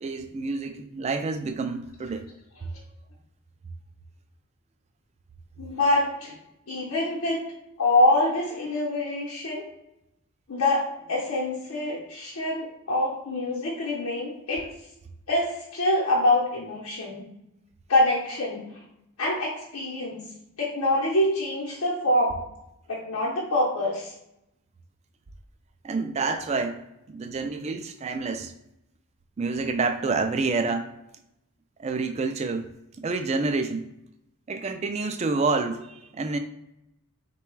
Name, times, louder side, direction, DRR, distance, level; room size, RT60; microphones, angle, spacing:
voice 1, 0.0-2.3 25.8-28.5 29.4-30.9 31.8-32.7 33.0-33.8 34.5-36.4, right 3 dB, 30° right, 7 dB, 0.3 m, -28 dB
voice 2, 5.6-6.4 6.7-7.4 7.8-9.6 10.5-14.7 15.3-17.3 17.9-18.7 19.2-20.2 20.6-22.4 22.9-24.1, left 1 dB, 70° left, -5 dB, 0.8 m, -25 dB
3.9 x 2.3 x 4.5 m, 0.85 s
head